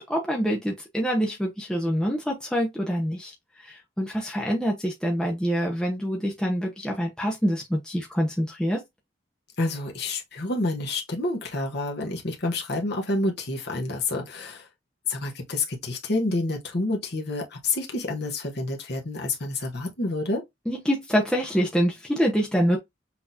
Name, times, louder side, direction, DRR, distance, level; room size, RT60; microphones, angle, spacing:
voice 1, 0.0-8.8 20.7-22.8, equal, 5° left, 0.8 m, -26 dB
voice 2, 9.6-14.7 15.1-20.4, left 2 dB, 55° left, 1.1 m, -28 dB
5.9 x 2.9 x 2.6 m
head